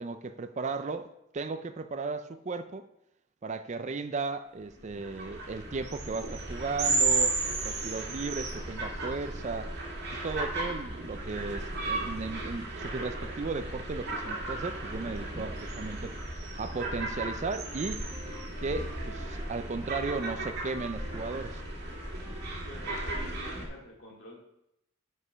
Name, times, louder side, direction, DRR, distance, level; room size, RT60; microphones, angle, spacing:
voice 1, 0.0-2.9 3.4-7.4 7.6-9.7 10.2-18.0 18.6-21.6, right 4 dB, 35° right, 0.4 m, -35 dB
sound 1, 4.7-23.7, right 2 dB, 50° right, 2.5 m, -34 dB
Wind instrument woodwind instrument, 16.5-23.1, equal, 30° left, 1.3 m, -51 dB
voice 2, 22.6-24.4, left 1 dB, 55° left, 2.3 m, -48 dB
9.6 x 5.0 x 5.7 m
head